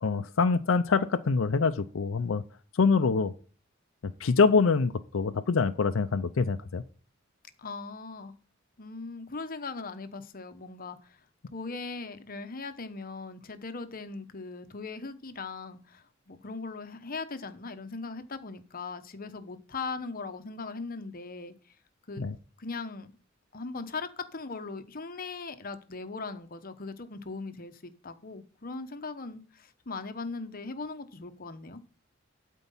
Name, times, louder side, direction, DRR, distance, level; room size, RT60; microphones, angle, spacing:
voice 1, 0.0-2.4 2.7-3.3 4.0-6.8 22.2-22.4, left 4 dB, 70° left, 8 dB, 0.5 m, -25 dB
voice 2, 7.6-8.4 8.8-11.2 11.5-21.5 22.1-22.2 22.6-23.1 23.5-31.8, left 4 dB, 45° left, 10 dB, 1.0 m, -39 dB
12.0 x 4.6 x 5.5 m, 0.41 s
head